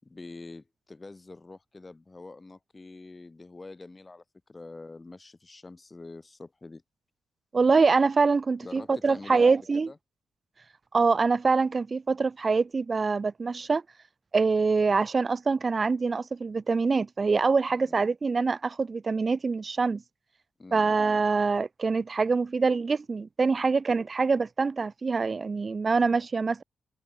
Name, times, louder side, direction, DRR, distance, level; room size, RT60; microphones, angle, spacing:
voice 1, 0.0-4.2 4.5-6.8 8.6-10.0 17.7-18.0 20.6-20.9, left 3 dB, 20° left, 4.7 m, -45 dB
voice 2, 7.5-9.9 10.9-13.8 14.3-20.0 20.7-26.6, right 4 dB, 30° right, 1.9 m, -25 dB
cardioid pair, 120°, 0 cm